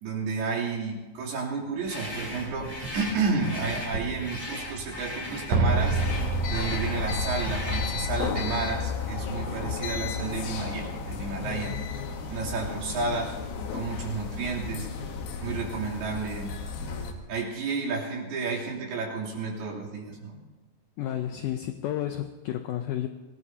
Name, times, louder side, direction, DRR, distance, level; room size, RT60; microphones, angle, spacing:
voice 1, 0.0-6.0 6.5-13.3 13.7-14.9 15.4-16.6 17.3-20.4, right 4 dB, 80° right, -5 dB, 5.0 m, -31 dB
sound 1, 1.8-8.0, left 1 dB, 10° left, 2.4 m, -38 dB
sound 2, 2.4-3.7 3.9-4.9 5.2-5.3 5.5-8.4, right 4 dB, 55° right, 4.1 m, -29 dB
sound 3, 6.0-17.1, left 5 dB, 70° left, 2.8 m, -33 dB
voice 2, 21.0-23.1, left 11 dB, 85° left, 8 dB, 1.8 m, -31 dB
25.5 x 18.5 x 2.8 m, 1.2 s
omnidirectional pair, 4.5 m